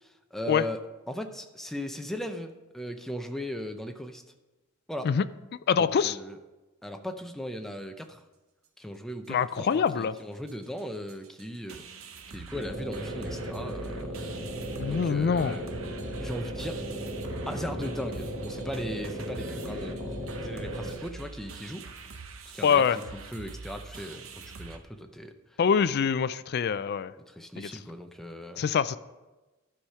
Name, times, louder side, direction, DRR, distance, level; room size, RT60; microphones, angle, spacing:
voice 1, 0.0-0.8 1.1-4.2 4.9-5.1 5.7-6.4 6.8-8.2 8.8-11.8 12.3-14.2 14.9-15.7 16.2-16.8 17.5-21.9 22.5-22.8 23.1-25.3 27.3-28.6, equal, ahead, 5 dB, 0.6 m, -38 dB
voice 2, 5.7-6.2 9.3-10.1 14.8-15.6 22.6-23.0 25.6-27.1 27.6-27.7 28.6-29.0, left 6 dB, 50° left, 15 dB, 0.3 m, -24 dB
sound 1, 9.3-9.4 9.6-9.9 10.2-10.3 10.5-24.8, right 4 dB, 70° right, 0.8 m, -45 dB
sound 2, 12.5-21.0, equal, 30° right, 2.5 m, -36 dB
12.0 x 4.9 x 5.6 m, 1.1 s
head